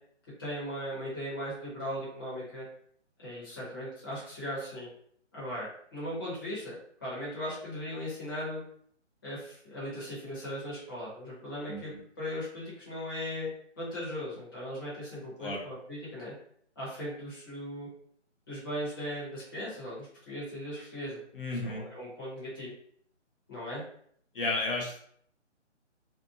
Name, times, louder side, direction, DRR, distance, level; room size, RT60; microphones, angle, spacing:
voice 1, 0.4-2.7 3.2-4.9 5.3-6.7 7.0-8.6 9.2-13.5 13.8-16.3 16.8-17.9 18.5-21.2 21.5-22.7 23.5-23.8, equal, 20° left, -9 dB, 0.8 m, -38 dB
voice 2, 21.3-21.8 24.3-25.0, left 2 dB, 50° left, 0 dB, 0.8 m, -32 dB
2.7 x 2.1 x 2.6 m, 0.63 s
hypercardioid pair, 175°, 36 cm